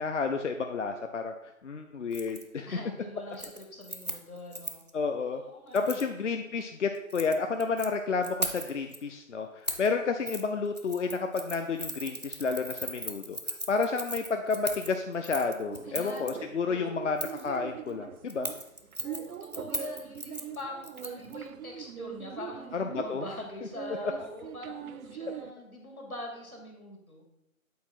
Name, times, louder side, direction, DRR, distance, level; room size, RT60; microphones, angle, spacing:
voice 1, 0.0-2.7 4.9-5.4 5.7-18.5 22.7-23.2, left 4 dB, 60° left, 5 dB, 0.7 m, -31 dB
Keys jangling, 2.1-2.4 2.8-3.1 3.3-4.9 5.7-6.1 6.9-7.9 8.2-9.0 9.7-9.9 10.3-10.4 10.7-16.3 17.2-17.5 18.3-21.3 21.6-21.7, right 1 dB, 30° right, 0.4 m, -38 dB
voice 2, 2.7-4.8 5.2-6.1 15.8-17.0 19.0-27.2, left 2 dB, 85° left, 1 dB, 2.5 m, -43 dB
sound 1, 15.7-25.5, right 9 dB, 90° right, 0.5 m, -42 dB
8.5 x 4.1 x 4.4 m, 0.85 s
figure-of-eight pair, 155°, 42 cm